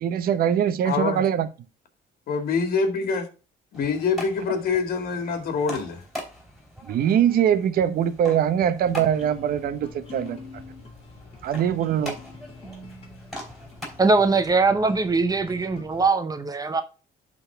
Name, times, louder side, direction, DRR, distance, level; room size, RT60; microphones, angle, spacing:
voice 1, 0.0-1.5 6.9-10.4 11.4-12.2, right 9 dB, 60° right, 0.9 m, -22 dB
voice 2, 0.8-1.2 2.3-3.3 3.7-6.0, left 5 dB, 60° left, 2.2 m, -25 dB
sound 1, 3.7-14.6, equal, ahead, 3.9 m, -42 dB
sound 2, 8.8-16.1, left 3 dB, 35° left, 3.4 m, -44 dB
voice 3, 14.0-16.8, right 3 dB, 20° right, 0.8 m, -21 dB
11.0 x 4.0 x 3.5 m
cardioid pair, 110°, 17 cm